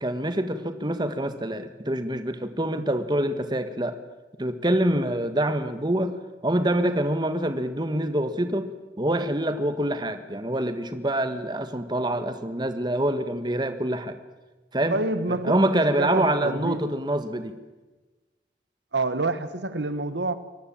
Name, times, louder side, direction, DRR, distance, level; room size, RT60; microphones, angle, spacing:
voice 1, 0.0-4.0 4.4-6.2 6.4-8.7 9.0-14.2 14.7-15.0 15.3-17.6, right 1 dB, 25° right, 9 dB, 1.7 m, -26 dB
voice 2, 14.9-16.9 18.9-20.3, right 2 dB, 80° right, 13 dB, 1.5 m, -28 dB
24.5 x 19.5 x 8.8 m, 1.2 s
head